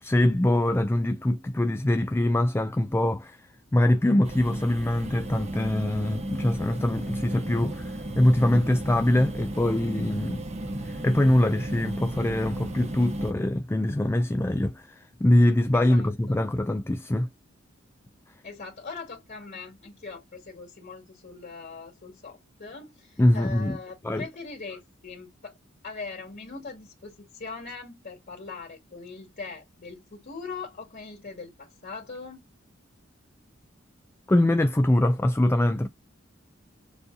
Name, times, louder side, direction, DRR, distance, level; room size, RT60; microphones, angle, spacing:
voice 1, 0.0-3.4 3.7-10.4 10.8-17.3 23.2-23.8 24.0-24.2 34.3-35.9, left 1 dB, 10° left, 0.3 m, -23 dB
sound 1, 4.2-13.3, right 1 dB, 35° right, 0.7 m, -34 dB
voice 2, 15.7-16.4 18.4-25.6 25.8-32.4, left 4 dB, 50° left, 2.3 m, -41 dB
6.8 x 2.7 x 2.6 m
head